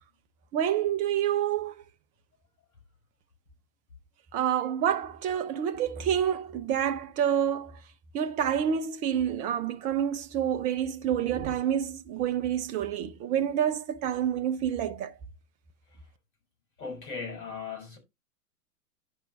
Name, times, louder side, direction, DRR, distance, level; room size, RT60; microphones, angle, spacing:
voice 1, 0.5-1.7 4.3-7.8 8.1-15.1, right 9 dB, 20° right, 0.4 m, -28 dB
voice 2, 16.8-18.0, left 5 dB, 60° left, 5.9 m, -37 dB
10.5 x 5.3 x 3.4 m
figure-of-eight pair, 100°, 47 cm